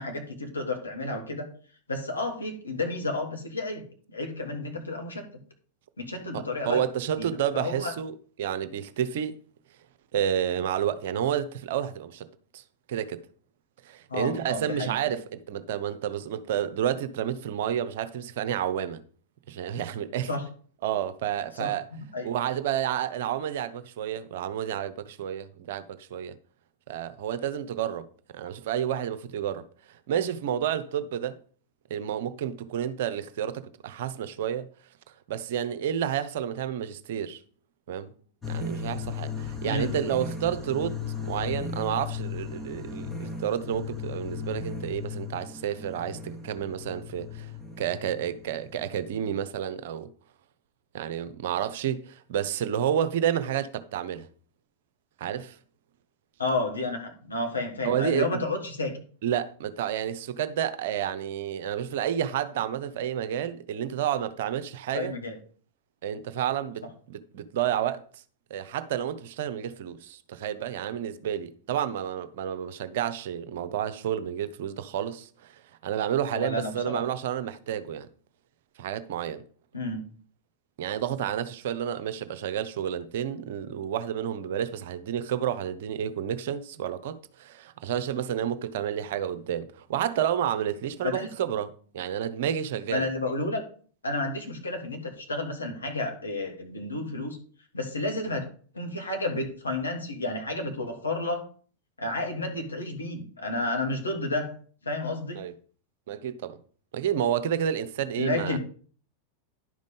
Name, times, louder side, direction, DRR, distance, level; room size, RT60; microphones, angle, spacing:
voice 1, 0.0-1.5 1.9-3.8 4.1-5.3 6.0-6.8 7.2-7.3 7.5-7.9 14.1-15.1 20.3-20.5 21.6-22.3 39.6-39.9 56.4-59.0 64.9-65.4 76.3-77.0 79.7-80.0 91.0-91.3 92.9-93.6 94.0-97.4 97.7-98.5 98.7-101.5 102.0-104.5 104.8-105.4 108.2-108.6, left 2 dB, 75° left, 2.1 m, -31 dB
voice 2, 6.3-9.4 10.1-12.3 12.5-12.6 12.9-13.2 13.8-19.0 19.5-20.3 20.8-21.8 22.2-26.3 26.9-28.1 28.3-29.6 30.1-31.4 31.9-34.7 35.3-37.4 37.9-38.1 38.5-47.5 47.8-50.1 50.9-54.3 55.2-55.6 57.8-58.4 59.2-65.1 66.0-68.0 68.5-78.1 78.8-79.4 80.8-93.1 105.3-105.5 106.1-106.6 106.9-108.6, right 9 dB, 55° right, 0.8 m, -30 dB
sound 1, 38.4-49.4, left 5 dB, 15° left, 1.5 m, -36 dB
11.0 x 5.2 x 5.3 m
figure-of-eight pair, 90°, 0 cm